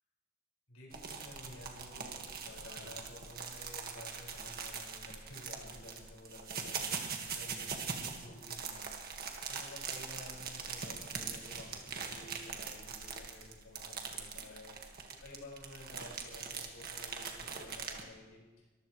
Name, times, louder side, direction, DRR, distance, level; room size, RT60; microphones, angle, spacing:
voice 1, 0.7-8.9 9.5-14.7 15.2-18.7, left 1 dB, 80° left, -3 dB, 5.4 m, -52 dB
sound 1, 0.9-18.0, right 5 dB, 50° right, 1.7 m, -42 dB
23.0 x 15.0 x 3.2 m, 1.3 s
head